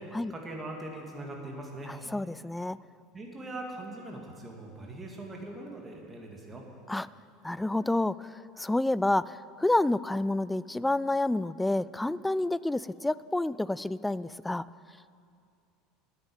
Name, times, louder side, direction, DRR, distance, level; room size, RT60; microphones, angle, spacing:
voice 1, 0.3-1.9 3.1-6.6, right 2 dB, 20° right, 0 dB, 2.7 m, -41 dB
voice 2, 1.9-2.8 6.9-7.1 7.4-14.6, left 2 dB, 10° left, 18 dB, 0.3 m, -29 dB
9.7 x 8.8 x 8.9 m, 2.4 s
figure-of-eight pair, 75°, 0 cm